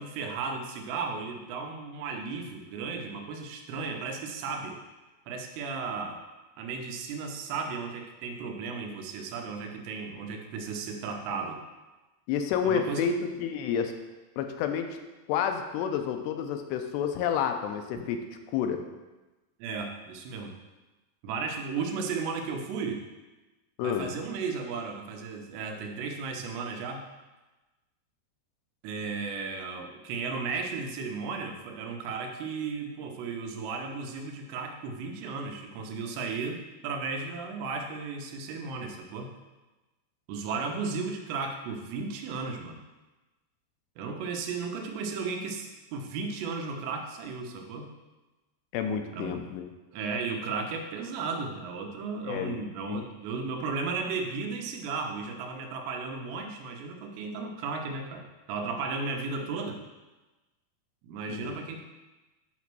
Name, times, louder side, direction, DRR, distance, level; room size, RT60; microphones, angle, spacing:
voice 1, 0.0-4.8 5.3-6.2 6.6-11.6 12.6-13.2 19.6-20.5 21.2-23.1 23.8-27.0 28.8-39.3 40.3-42.8 44.0-47.9 49.1-49.4 49.9-59.8 61.0-61.8, right 4 dB, 90° right, 3 dB, 3.0 m, -35 dB
voice 2, 12.3-13.9 14.4-15.0 15.3-18.2 18.5-18.8 23.8-24.1 48.7-49.7 52.3-52.6 52.9-53.0 61.3-61.6, left 8 dB, 85° left, 6 dB, 2.7 m, -29 dB
8.2 x 3.1 x 6.0 m, 1.1 s
omnidirectional pair, 4.9 m